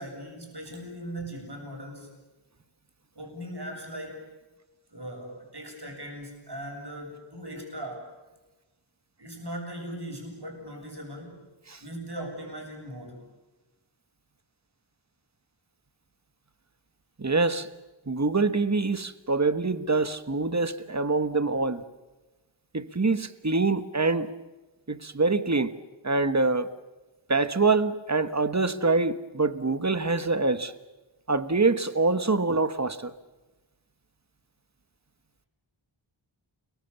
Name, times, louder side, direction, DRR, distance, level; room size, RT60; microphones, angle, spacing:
voice 1, 0.0-2.1 3.1-4.2 4.9-8.1 9.2-11.4 11.8-13.2, right 1 dB, 55° right, 7.8 m, -39 dB
voice 2, 17.2-17.7 18.1-21.8 22.7-24.3 24.9-25.8 26.0-26.7 27.3-30.7 31.3-33.1, right 3 dB, 35° right, 1.4 m, -25 dB
29.5 x 23.5 x 7.1 m
wide cardioid pair, 50°, 49 cm